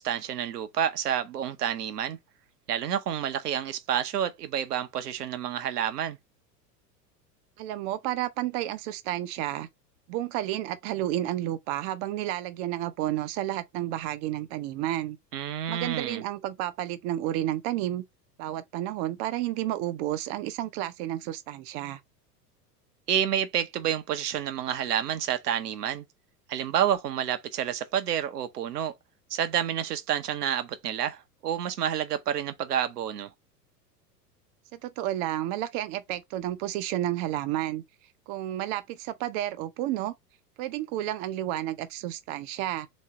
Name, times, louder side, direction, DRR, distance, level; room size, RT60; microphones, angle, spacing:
voice 1, 0.0-2.2 2.7-6.2 15.3-16.2 23.1-26.0 26.5-28.9 29.3-33.3, right 9 dB, 70° right, 1.0 m, -29 dB
voice 2, 7.6-9.7 10.1-15.2 15.7-18.0 18.4-22.0 34.7-37.8 38.3-40.1 40.6-42.9, right 13 dB, 40° right, 0.7 m, -31 dB
3.6 x 3.2 x 4.1 m
figure-of-eight pair, 85°, 49 cm